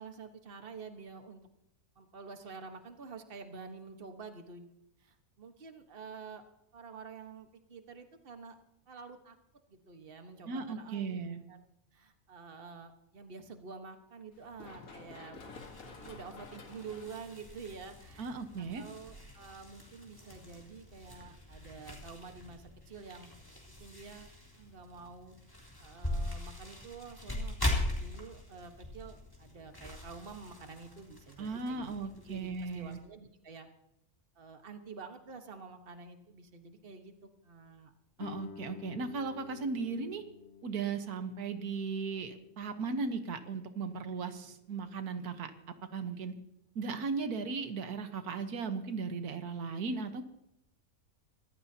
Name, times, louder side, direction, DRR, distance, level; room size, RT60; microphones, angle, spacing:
voice 1, 0.0-1.4 2.0-4.7 5.0-6.4 6.7-8.6 8.9-9.4 9.7-11.2 11.5-11.6 11.9-15.4 15.8-23.3 23.8-25.3 25.8-31.9 32.3-33.7 34.3-37.9, right 5 dB, 40° right, 6 dB, 1.5 m, -48 dB
voice 2, 10.5-11.4 18.2-18.8 31.4-33.0 38.2-40.2 40.6-45.5 45.9-46.3 46.8-50.2, right 4 dB, 90° right, 8 dB, 1.7 m, -36 dB
Run, 14.3-21.9, left 3 dB, 65° left, 2.0 m, -54 dB
sound 1, 15.4-33.0, left 1 dB, 15° left, 3.6 m, -41 dB
Guitar, 38.2-43.6, left 6 dB, 50° left, 1.1 m, -51 dB
24.0 x 15.0 x 2.8 m, 0.81 s
omnidirectional pair, 1.6 m